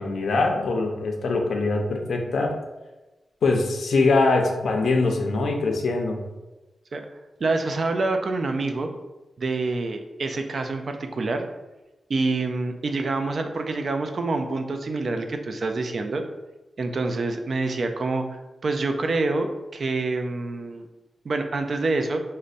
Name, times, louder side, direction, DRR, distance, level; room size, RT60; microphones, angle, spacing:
voice 1, 0.0-2.5 3.4-6.2, left 3 dB, 75° left, 2 dB, 0.5 m, -23 dB
voice 2, 7.4-8.9 9.4-11.5 12.1-16.2 16.8-18.2 18.6-20.9 21.2-22.2, right 3 dB, 45° right, 6 dB, 0.3 m, -26 dB
5.1 x 2.1 x 2.5 m, 1.1 s
wide cardioid pair, 160°, 0 cm